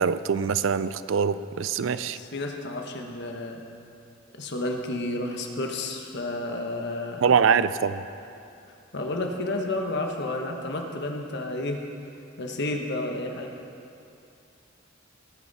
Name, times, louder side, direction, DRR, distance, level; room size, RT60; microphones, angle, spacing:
voice 1, 0.0-2.2 7.2-8.0, right 6 dB, 70° right, 14 dB, 0.4 m, -23 dB
voice 2, 1.9-3.6 4.3-7.2 8.9-11.8 12.4-13.5, left 2 dB, 60° left, 3 dB, 1.2 m, -31 dB
18.5 x 9.0 x 4.1 m, 2.6 s
head